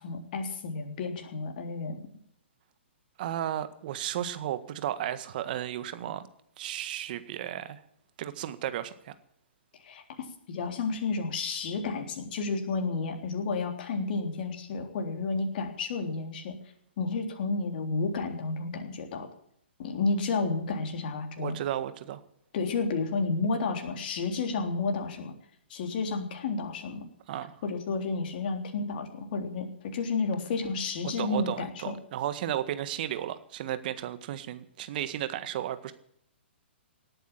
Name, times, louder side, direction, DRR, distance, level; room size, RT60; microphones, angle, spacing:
voice 1, 0.0-2.0 9.8-16.5 17.0-19.3 19.8-21.6 22.5-25.3 25.7-27.0 27.6-31.9, left 4 dB, 50° left, 4 dB, 3.6 m, -31 dB
voice 2, 3.2-6.2 6.6-7.8 8.2-9.1 21.4-22.2 27.3-27.5 31.0-35.9, right 11 dB, 50° right, 12 dB, 1.6 m, -34 dB
18.5 x 9.1 x 7.6 m, 0.70 s
figure-of-eight pair, 125°, 6 cm